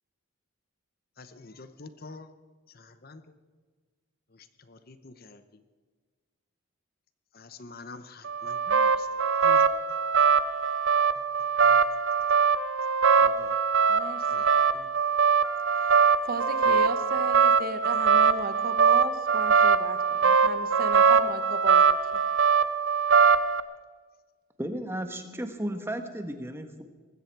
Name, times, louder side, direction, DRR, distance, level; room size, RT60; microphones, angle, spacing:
voice 1, 1.2-2.3 2.7-3.3 4.3-5.6 7.3-9.1 9.4-9.6 11.2-11.3 11.6-11.9 13.2-13.6 14.3-14.9 16.7-16.9, left 3 dB, 45° left, 10 dB, 0.8 m, -48 dB
sound 1, 8.2-23.6, right 5 dB, 70° right, 0.8 m, -22 dB
voice 2, 13.9-14.3 16.2-22.2, right 3 dB, 45° right, 10 dB, 1.1 m, -35 dB
voice 3, 24.6-26.8, right 1 dB, 10° right, 7 dB, 1.2 m, -34 dB
20.0 x 15.5 x 4.7 m, 1.4 s
head